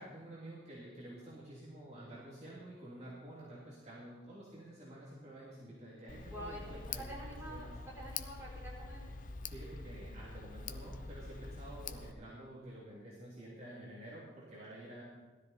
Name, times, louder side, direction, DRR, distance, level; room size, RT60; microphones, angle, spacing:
voice 1, 0.0-7.7 9.5-15.0, right 1 dB, 40° right, -7 dB, 3.1 m, -50 dB
Tick, 6.1-12.1, left 4 dB, 50° left, 0.7 m, -45 dB
voice 2, 6.2-9.1, equal, 15° right, -6 dB, 5.2 m, -48 dB
18.0 x 13.0 x 4.4 m, 1.3 s
head